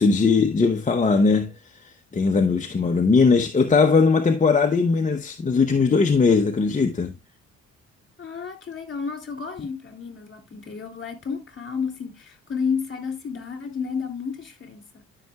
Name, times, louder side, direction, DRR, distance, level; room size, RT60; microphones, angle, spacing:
voice 1, 0.0-1.5 1.8-7.1, left 4 dB, 25° left, 0.8 m, -19 dB
voice 2, 8.2-15.0, left 6 dB, 40° left, 2.9 m, -31 dB
12.5 x 5.8 x 2.3 m
cardioid pair, 90°, 30 cm